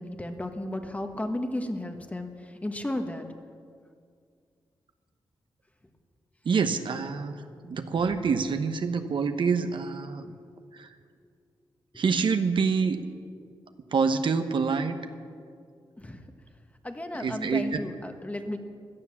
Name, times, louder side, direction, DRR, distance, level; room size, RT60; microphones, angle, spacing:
voice 1, 0.0-3.3 16.0-16.3 16.8-18.6, left 1 dB, 15° left, 6 dB, 1.4 m, -34 dB
voice 2, 6.4-10.3 10.7-10.9 11.9-13.0 13.9-15.0 17.2-17.8, right 5 dB, 60° right, 8 dB, 1.0 m, -26 dB
16.5 x 11.0 x 7.2 m, 2.2 s
cardioid pair, 75°, 9 cm